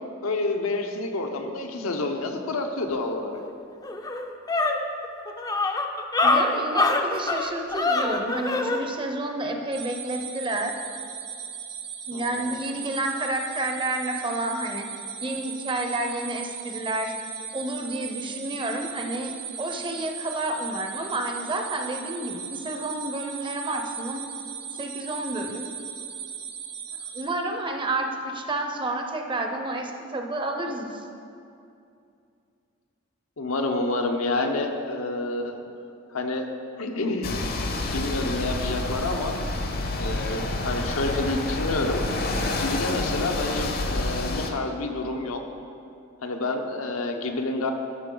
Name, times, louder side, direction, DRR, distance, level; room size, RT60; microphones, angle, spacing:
voice 1, 0.2-3.4 12.1-12.6 33.4-35.6 36.1-36.5 36.8-37.4 37.9-39.4 40.0-42.1 42.6-45.5 46.2-47.7, left 2 dB, 80° left, 4 dB, 0.8 m, -28 dB
sound 1, 3.4-3.5 3.8-8.8, left 3 dB, 20° left, 0.4 m, -24 dB
voice 2, 6.2-10.7 12.1-14.9 15.2-17.2 17.5-24.2 24.7-25.7 27.1-31.0, right 2 dB, 25° right, 4 dB, 0.6 m, -30 dB
sound 2, 9.7-27.2, right 7 dB, 50° right, 1.0 m, -38 dB
sound 3, 37.2-44.5, left 2 dB, 45° left, 0.7 m, -28 dB
13.0 x 5.7 x 3.8 m, 2.6 s
head